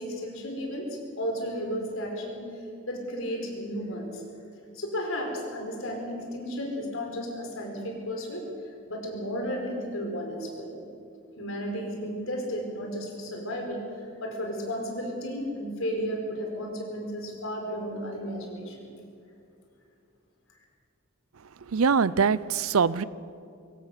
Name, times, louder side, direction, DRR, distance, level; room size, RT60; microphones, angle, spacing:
voice 1, 0.0-2.4 2.9-4.2 4.7-8.4 8.9-10.8 11.4-13.8 14.2-18.9, equal, 70° left, 1 dB, 4.9 m, -33 dB
voice 2, 21.7-23.0, right 5 dB, 80° right, 19 dB, 0.6 m, -23 dB
23.0 x 17.5 x 6.8 m, 2.5 s
head